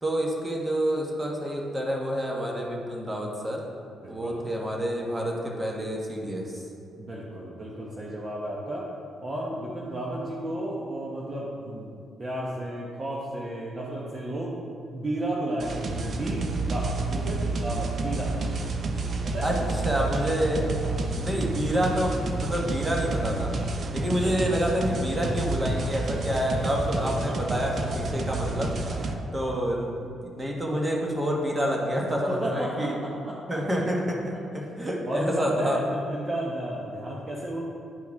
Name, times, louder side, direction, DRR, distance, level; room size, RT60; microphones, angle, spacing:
voice 1, 0.0-3.6 4.1-6.6 19.4-20.7 21.2-23.5 23.9-28.7 29.3-29.9 30.2-32.9 33.5-34.2 34.5-35.8, equal, 20° right, -1 dB, 1.3 m, -28 dB
voice 2, 4.0-4.4 7.0-8.9 9.2-14.6 14.9-18.3 19.2-19.7 20.8-21.1 24.1-24.4 27.0-28.1 28.8-29.3 32.3-33.6 35.1-37.6, right 1 dB, 35° right, -4 dB, 1.0 m, -33 dB
sound 1, 15.6-29.1, right 3 dB, 50° right, 0.6 m, -30 dB
10.5 x 4.6 x 3.6 m, 2.4 s
cardioid pair, 90°, 0 cm